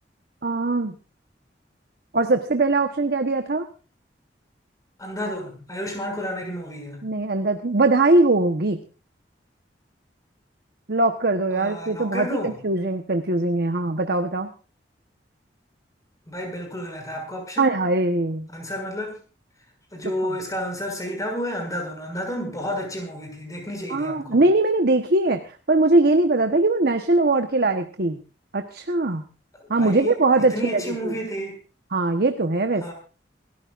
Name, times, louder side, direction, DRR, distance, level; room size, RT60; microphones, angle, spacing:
voice 1, 0.4-0.9 2.1-3.7 5.2-5.3 7.0-8.8 10.9-14.5 17.6-18.5 23.9-25.4 25.7-28.2 28.5-29.3 29.7-31.1 31.9-32.9, right 2 dB, 60° right, 6 dB, 1.1 m, -21 dB
voice 2, 5.0-7.1 11.5-12.6 16.3-17.8 18.5-19.2 19.9-24.4 29.8-31.6 32.8-32.9, equal, 20° left, 2 dB, 6.6 m, -31 dB
27.5 x 14.0 x 2.5 m, 0.35 s
head